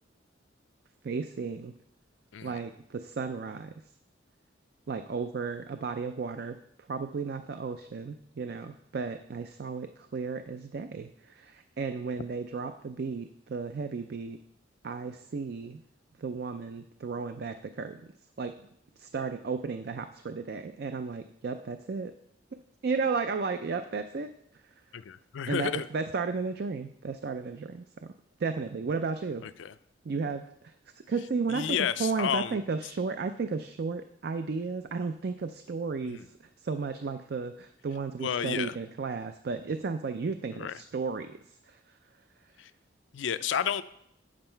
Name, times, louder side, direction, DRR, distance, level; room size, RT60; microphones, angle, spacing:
voice 1, 1.0-1.7 2.4-3.7 4.9-6.6 6.9-14.4 14.8-15.8 16.2-18.0 18.4-18.7 19.0-22.1 22.5-24.7 25.5-28.1 28.4-29.5 30.0-30.7 31.1-42.0, right 4 dB, 55° right, 9 dB, 0.4 m, -34 dB
voice 2, 24.9-25.9 29.4-29.7 31.5-32.6 36.0-36.3 38.2-38.7 40.5-40.7 42.6-42.7 43.1-43.8, left 8 dB, 80° left, 13 dB, 0.4 m, -31 dB
8.8 x 7.5 x 4.4 m, 0.74 s
head